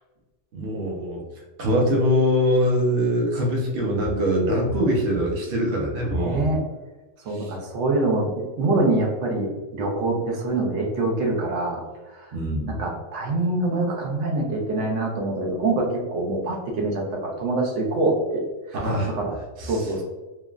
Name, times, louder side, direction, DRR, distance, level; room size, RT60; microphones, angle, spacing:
voice 1, 0.5-1.2 1.6-6.5 7.4-7.5 12.3-12.8 18.8-19.1 19.6-19.8, equal, 55° right, -2 dB, 0.8 m, -23 dB
voice 2, 6.1-6.6 7.3-11.8 12.1-12.3 12.7-18.4 19.1-19.3 19.6-20.0, right 2 dB, 80° right, 0 dB, 1.0 m, -25 dB
3.1 x 2.2 x 2.3 m, 1.2 s
omnidirectional pair, 1.2 m